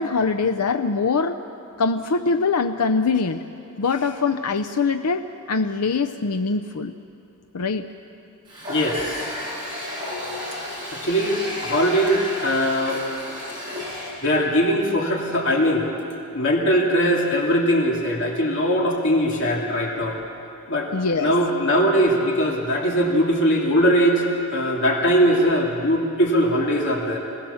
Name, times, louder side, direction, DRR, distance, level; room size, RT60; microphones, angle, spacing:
voice 1, 0.0-1.4 1.8-3.4 3.8-6.9 7.5-7.9 20.9-21.3, left 4 dB, 90° left, 7 dB, 0.6 m, -23 dB
Water tap faucet, 8.5-14.2, left 1 dB, 20° right, 7.9 m, -32 dB
voice 2, 8.7-9.2 10.9-13.0 14.2-15.9 16.3-20.2 20.7-20.9 21.2-24.2 24.5-27.2, equal, 55° left, -2 dB, 2.7 m, -20 dB
26.5 x 18.0 x 7.1 m, 2.7 s
head